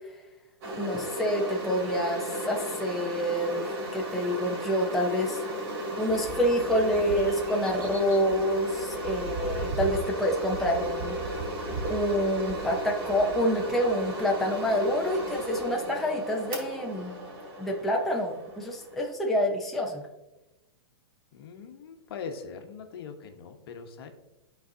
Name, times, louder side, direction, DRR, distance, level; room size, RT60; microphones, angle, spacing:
sound 1, 0.6-19.1, equal, 60° right, 2.4 m, -35 dB
voice 1, 0.8-5.4 6.0-11.2 11.9-17.2 17.6-20.0, equal, ahead, -1 dB, 0.6 m, -27 dB
sound 2, 6.1-15.7, right 4 dB, 25° right, 1.0 m, -40 dB
voice 2, 21.3-24.1, left 6 dB, 60° left, 5 dB, 1.1 m, -41 dB
12.0 x 4.1 x 2.7 m, 1.0 s
hypercardioid pair, 155°, 14 cm